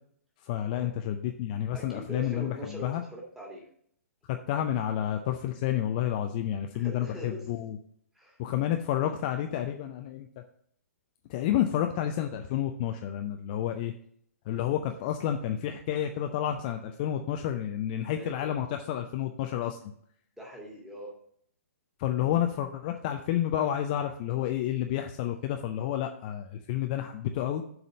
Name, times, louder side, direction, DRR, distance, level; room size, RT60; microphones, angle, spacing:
voice 1, 0.4-2.5 2.8-3.0 4.3-7.8 8.4-10.3 11.3-13.9 14.5-19.8 22.0-27.6, left 11 dB, 30° left, 5 dB, 0.5 m, -30 dB
voice 2, 1.7-3.6 6.7-7.4 8.1-8.4 18.2-18.5 20.4-21.1, right 1 dB, 5° right, -2 dB, 1.8 m, -42 dB
6.9 x 4.1 x 6.3 m, 0.64 s
figure-of-eight pair, 125°, 8 cm